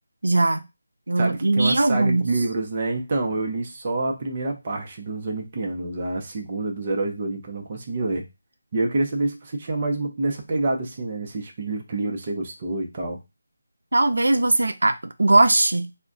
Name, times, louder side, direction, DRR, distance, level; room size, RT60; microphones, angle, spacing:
voice 1, 0.2-0.6 1.1-2.2 13.9-15.9, right 2 dB, 90° right, 0.4 m, -19 dB
voice 2, 1.2-8.2 8.7-13.2, right 2 dB, 25° right, 0.5 m, -27 dB
2.4 x 2.1 x 3.6 m
figure-of-eight pair, 175°, 0 cm